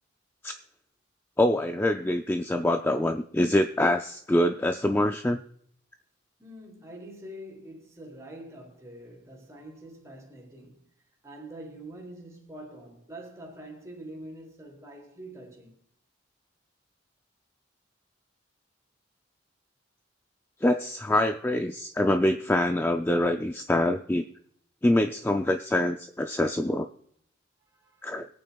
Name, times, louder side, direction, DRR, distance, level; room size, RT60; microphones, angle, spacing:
voice 1, 1.4-5.4 20.6-24.3 24.8-26.9 28.0-28.3, left 1 dB, 10° left, 0.4 m, -25 dB
voice 2, 6.4-10.9 11.2-15.8 27.6-28.1, right 1 dB, 15° right, 3.5 m, -45 dB
24.5 x 8.7 x 2.3 m
head